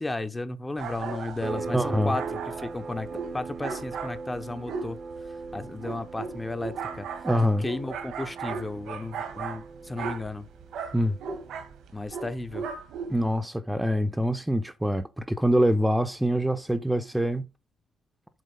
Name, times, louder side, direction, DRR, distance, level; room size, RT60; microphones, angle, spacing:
voice 1, 0.0-3.1 3.3-5.0 5.5-7.3 7.6-10.5 11.9-12.7, left 2 dB, 15° left, 0.9 m, -34 dB
sound 1, 0.8-13.4, right 6 dB, 75° right, 2.3 m, -37 dB
sound 2, 1.4-11.7, right 4 dB, 45° right, 1.1 m, -40 dB
voice 2, 1.7-2.1 7.2-7.6 10.9-11.2 13.1-17.4, equal, 10° right, 0.9 m, -25 dB
7.8 x 4.5 x 5.5 m
cardioid pair, 90°, 0 cm